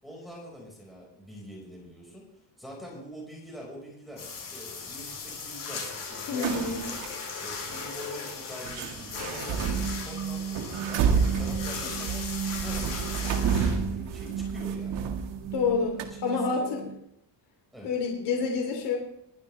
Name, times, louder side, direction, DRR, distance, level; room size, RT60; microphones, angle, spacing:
voice 1, 0.0-2.3 2.6-7.0 7.4-11.0 11.3-12.2 12.6-15.1 15.7-16.9 17.7-17.9, equal, ahead, -3 dB, 4.8 m, -45 dB
sound 1, 4.2-14.6, left 5 dB, 50° left, 5.8 m, -38 dB
voice 2, 6.3-6.8 11.8-12.0 15.5-16.8 17.8-19.0, left 4 dB, 75° left, 1 dB, 3.0 m, -28 dB
sound 2, 6.4-7.1 7.6-7.8 8.6-15.7 16.0-16.1, right 6 dB, 85° right, 1.9 m, -30 dB
sound 3, 9.2-17.0, right 7 dB, 55° right, 0.8 m, -35 dB
21.0 x 11.5 x 3.3 m, 0.76 s
cardioid pair, 170°, 41 cm